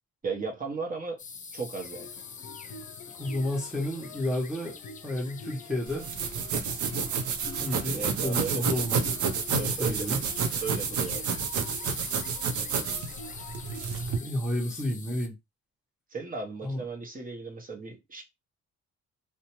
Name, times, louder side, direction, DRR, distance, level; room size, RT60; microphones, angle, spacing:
voice 1, 0.2-1.2 1.5-2.1 7.9-8.7 9.6-10.1 10.6-11.3 16.1-18.2, right 4 dB, 30° right, 0.9 m, -36 dB
sound 1, 1.2-15.3, left 6 dB, 25° left, 0.4 m, -45 dB
sound 2, 1.8-14.4, left 4 dB, 70° left, 0.6 m, -47 dB
voice 2, 3.2-4.8 5.0-6.1 7.5-9.2 9.5-10.2 14.2-15.3 16.6-16.8, left 1 dB, ahead, 0.9 m, -31 dB
sound 3, 5.9-14.2, right 6 dB, 75° right, 0.6 m, -30 dB
2.6 x 2.1 x 2.9 m
cardioid pair, 90°, 30 cm